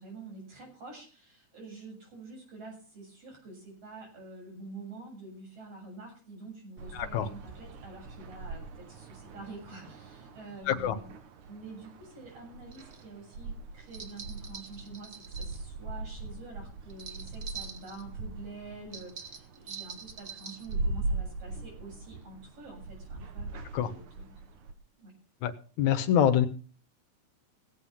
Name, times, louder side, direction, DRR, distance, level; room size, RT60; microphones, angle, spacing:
voice 1, 0.0-11.1 11.4-24.4 25.0-25.1, right 3 dB, 55° right, 0 dB, 8.4 m, -47 dB
sound 1, 6.8-24.7, right 2 dB, 80° right, 2.8 m, -41 dB
voice 2, 6.9-7.3 10.7-11.0 23.7-23.9 25.4-25.5 25.8-26.5, left 9 dB, 80° left, 9 dB, 2.6 m, -25 dB
sound 2, 12.7-13.0 13.9-15.6 16.9-18.0 18.9-20.7, right 6 dB, 35° right, 1.4 m, -44 dB
17.5 x 8.2 x 5.8 m, 0.39 s
omnidirectional pair, 3.3 m